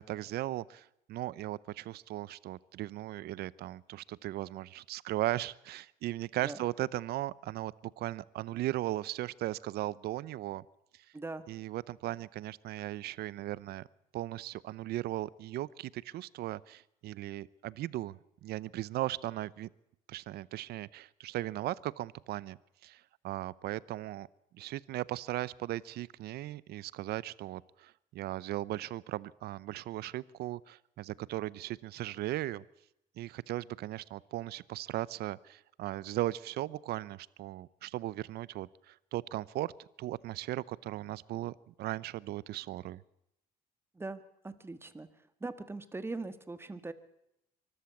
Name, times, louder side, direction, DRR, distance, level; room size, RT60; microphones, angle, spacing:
voice 1, 0.0-10.6 11.5-13.9 14.1-19.7 20.1-22.6 22.8-24.3 24.6-32.6 33.2-39.7 40.0-43.0, right 15 dB, 70° right, 21 dB, 0.7 m, -37 dB
voice 2, 11.1-11.5 43.9-45.1 45.4-46.9, right 3 dB, 15° right, 12 dB, 1.6 m, -41 dB
24.0 x 14.0 x 8.4 m, 0.83 s
cardioid pair, 110°, 17 cm